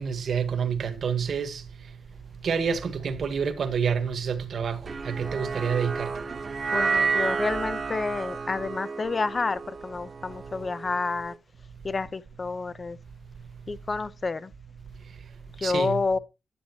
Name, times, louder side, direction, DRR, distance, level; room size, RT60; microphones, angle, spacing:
voice 1, 0.0-1.6 2.4-6.1 15.6-16.0, right 6 dB, 70° right, 1.6 m, -28 dB
sound 1, 4.9-11.2, right 5 dB, 50° right, 1.3 m, -30 dB
voice 2, 6.7-11.3 11.8-13.0 13.7-14.5 15.6-16.2, left 4 dB, 40° left, 0.9 m, -29 dB
10.0 x 9.8 x 3.0 m
cardioid pair, 70°, 0 cm